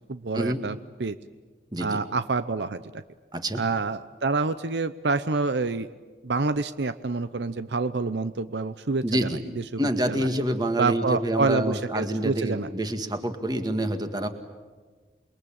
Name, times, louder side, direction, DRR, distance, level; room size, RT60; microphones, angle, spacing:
voice 1, 0.1-1.2 1.8-3.0 3.6-5.9 6.2-9.8 10.1-10.3 10.8-12.7, right 3 dB, 75° right, 13 dB, 0.7 m, -27 dB
voice 2, 3.3-3.6 9.0-9.4 9.8-14.3, right 1 dB, 25° right, 7 dB, 1.9 m, -27 dB
28.5 x 22.0 x 8.7 m, 1.4 s
head